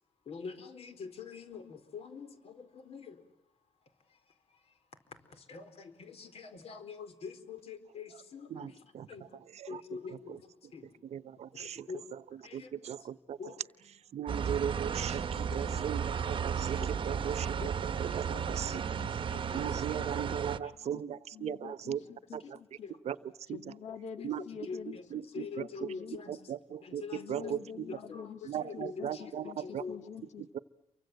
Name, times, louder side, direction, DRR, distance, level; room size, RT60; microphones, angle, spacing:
voice 1, 0.3-3.2 4.1-4.8 5.1-9.4 9.7-10.9 11.5-12.7 13.0-13.6 15.5-15.8 16.3-16.4 16.7-17.8 18.3-18.8 19.3-19.7 20.1-20.2 20.6-20.7 22.0-22.1 22.4-22.6 22.8-23.0 24.1-26.5 26.8-30.0, left 5 dB, 60° left, 9 dB, 4.2 m, -46 dB
voice 2, 8.5-9.1 9.5-9.8 11.1-11.9 12.5-13.4 14.1-19.0 19.5-22.0 22.3-22.4 23.1-23.2 23.5-23.7 24.2-24.4 25.1-25.2 25.6-25.9 26.3-27.0 27.3-27.6 28.4-29.8 30.4-30.6, right 9 dB, 70° right, 16 dB, 0.9 m, -38 dB
sound 1, 14.3-20.6, right 7 dB, 45° right, 1.0 m, -34 dB
voice 3, 18.6-19.3 19.9-20.0 20.9-21.0 21.3-22.0 22.3-22.4 23.5-25.0 25.4-26.2 27.1-28.4 28.7-30.4, left 6 dB, 90° left, 8 dB, 2.0 m, -46 dB
29.0 x 24.5 x 7.8 m, 0.84 s
wide cardioid pair, 140°, 12 cm